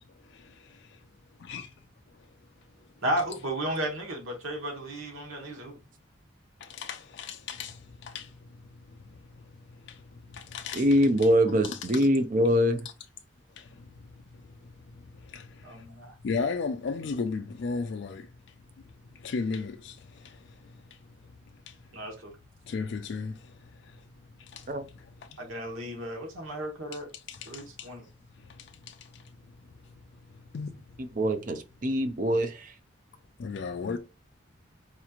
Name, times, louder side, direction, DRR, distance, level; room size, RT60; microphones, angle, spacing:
voice 1, 0.2-1.0 1.5-1.7 2.1-2.3 6.6-8.5 8.9-9.5 9.8-10.9 11.5-11.8 13.6-14.1 14.3-15.8 16.2-18.3 19.1-21.0 21.7-21.8 22.6-24.0 24.4-24.7 25.0-25.4 27.1-27.9 28.4-29.3 30.3-30.8 33.4-34.0, left 4 dB, 55° left, 0.3 m, -37 dB
voice 2, 3.0-5.8 15.6-16.1 21.9-22.3 25.4-27.1 27.5-28.0, right 1 dB, 85° right, 1.3 m, -34 dB
voice 3, 10.7-12.9 24.7-24.8 31.0-32.7, equal, 40° right, 0.5 m, -24 dB
4.2 x 3.0 x 2.4 m
head